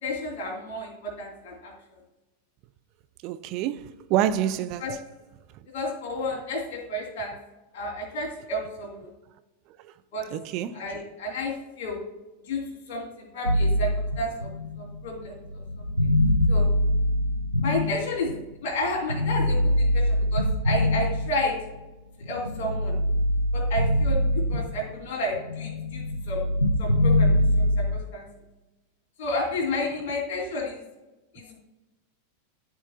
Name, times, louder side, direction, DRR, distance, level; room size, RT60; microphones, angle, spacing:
voice 1, 0.0-1.7 4.8-5.0 5.7-7.4 7.7-9.1 10.1-10.3 10.7-12.0 12.5-12.6 12.9-14.5 14.8-15.6 16.5-16.7 17.6-18.4 18.6-21.6 22.3-23.0 23.5-26.5 26.8-27.3 27.6-28.3 29.2-30.8 31.3-31.6, left 1 dB, 45° left, 2.8 m, -31 dB
voice 2, 3.2-5.0 9.8-9.9 10.3-10.8, right 11 dB, 40° right, 0.4 m, -27 dB
sound 1, 13.5-18.5 19.1-21.8 22.2-25.1 25.3-28.0, left 1 dB, 90° left, 0.4 m, -24 dB
13.0 x 4.6 x 2.8 m
figure-of-eight pair, 90°, 0 cm